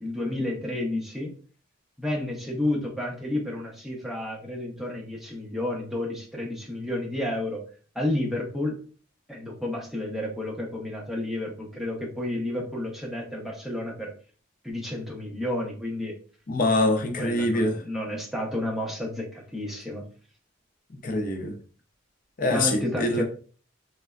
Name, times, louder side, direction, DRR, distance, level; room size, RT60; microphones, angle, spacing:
voice 1, 0.0-1.4 2.0-7.6 7.9-8.8 9.3-14.1 14.6-16.1 17.2-20.0 22.5-23.2, left 1 dB, ahead, 0.6 m, -31 dB
voice 2, 16.5-17.7 21.0-21.5 22.4-23.2, left 1 dB, 45° left, 0.5 m, -24 dB
3.2 x 2.1 x 2.3 m
head